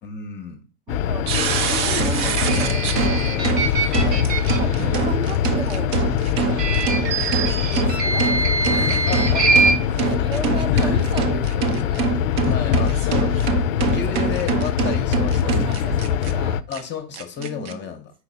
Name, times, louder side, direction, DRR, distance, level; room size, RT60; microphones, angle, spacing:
voice 1, 0.0-0.6 4.0-4.3 8.7-9.5 10.7-11.1 12.5-15.5 16.7-18.1, left 6 dB, 20° left, 5 dB, 0.8 m, -32 dB
sound 1, 0.9-16.6, left 9 dB, 55° left, 0.5 m, -23 dB
voice 2, 0.9-3.7 4.4-5.9 7.4-8.8 9.2-9.6 10.0-12.0 13.8-14.1 15.3-16.6 17.4-17.9, right 3 dB, 10° right, 8 dB, 0.4 m, -35 dB
sound 2, 1.3-16.3 16.7-16.8 17.1-17.7, right 6 dB, 35° right, 0.8 m, -25 dB
sound 3, 2.4-5.0 6.5-9.7, right 3 dB, 80° right, 1.5 m, -23 dB
4.8 x 4.0 x 5.4 m, 0.35 s
hypercardioid pair, 105°, 49 cm